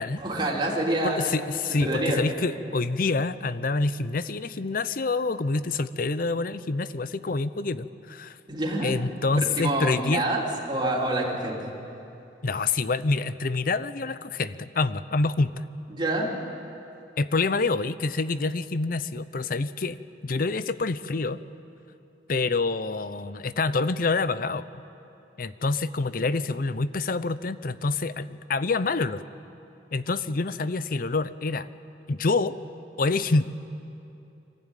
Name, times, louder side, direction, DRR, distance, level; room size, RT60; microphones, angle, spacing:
voice 1, 0.2-1.3 1.8-2.2 8.5-8.9 9.6-11.7 15.9-16.3, right 1 dB, 25° right, -4 dB, 3.5 m, -27 dB
voice 2, 1.0-8.4 8.8-10.2 12.4-15.6 17.2-20.0 20.2-21.4 22.3-24.7 25.4-29.2 29.9-31.7 32.1-32.6 33.0-33.4, left 3 dB, 50° left, 15 dB, 0.6 m, -27 dB
24.5 x 15.5 x 9.1 m, 2.8 s
head